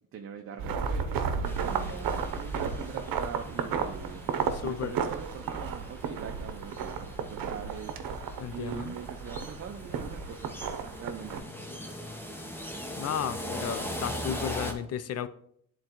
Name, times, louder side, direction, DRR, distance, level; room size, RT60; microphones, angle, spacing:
voice 1, 0.1-4.3 4.6-8.0 8.5-10.7 10.9-11.4, right 7 dB, 40° right, 0.5 m, -42 dB
sound 1, 0.6-11.4, right 6 dB, 90° right, 0.7 m, -33 dB
sound 2, 1.4-14.7, left 1 dB, 5° left, 0.6 m, -41 dB
voice 2, 4.5-4.9 8.4-8.9 12.9-15.3, left 9 dB, 50° left, 0.5 m, -34 dB
11.0 x 3.8 x 2.9 m
cardioid pair, 145°, 34 cm